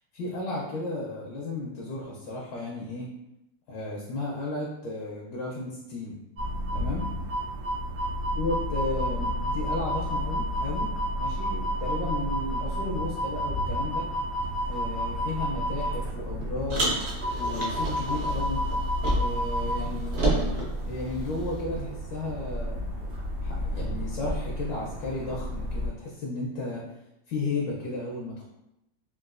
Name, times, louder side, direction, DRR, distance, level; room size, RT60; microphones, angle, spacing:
voice 1, 0.1-3.1 3.7-6.2 6.7-7.1 8.4-10.9 11.2-14.1 14.7-17.0 17.4-18.6 19.1-20.5 20.9-22.8 23.4-26.8 27.3-28.4, left 2 dB, 70° left, -3 dB, 1.2 m, -34 dB
sound 1, 6.4-25.9, equal, 55° right, 0.9 m, -31 dB
Car, 16.7-19.5 19.8-21.6, right 1 dB, 80° right, 0.5 m, -30 dB
3.9 x 2.3 x 2.4 m, 0.88 s
omnidirectional pair, 2.3 m